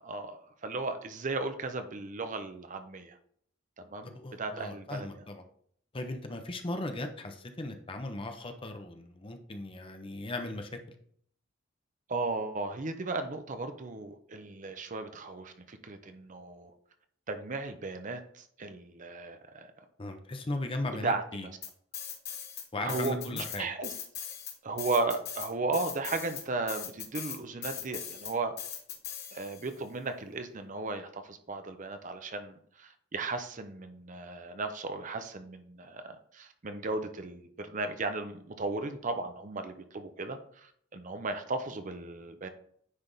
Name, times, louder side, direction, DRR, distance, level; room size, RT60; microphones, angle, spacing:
voice 1, 0.0-3.2 3.9-4.1 4.4-5.2 12.1-16.7 17.3-19.8 21.0-21.5 22.8-23.9 24.6-28.5 29.3-42.5, right 3 dB, 40° right, 7 dB, 0.7 m, -35 dB
voice 2, 4.0-5.4 5.9-11.0 20.0-21.5 22.7-23.7, left 2 dB, 25° left, 6 dB, 0.7 m, -37 dB
sound 1, 21.6-22.6 22.9-29.7, left 9 dB, 55° left, 1.2 m, -40 dB
9.7 x 3.4 x 3.9 m, 0.62 s
head